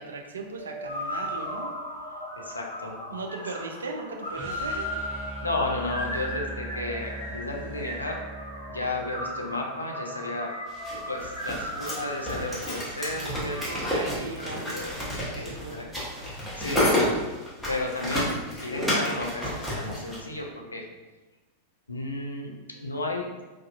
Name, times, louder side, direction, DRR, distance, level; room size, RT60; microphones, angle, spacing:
voice 1, 0.0-1.7 2.1-2.2 3.1-5.3 13.1-15.9, right 3 dB, 70° right, 2 dB, 0.3 m, -38 dB
sound 1, 0.6-13.9, equal, 90° right, 0.7 m, -37 dB
voice 2, 2.3-3.0 5.4-8.2 8.7-10.5 11.1-13.7 14.1-15.0 15.4-15.8 16.6-17.1 17.7-18.3 18.6-20.8 21.9-23.3, left 2 dB, 80° left, 1 dB, 0.4 m, -33 dB
sound 2, 4.3-10.4, right 1 dB, 35° right, 0.9 m, -41 dB
sound 3, 10.8-20.2, left 1 dB, ahead, 0.9 m, -30 dB
2.4 x 2.3 x 2.3 m, 1.2 s
figure-of-eight pair, 90°, 0 cm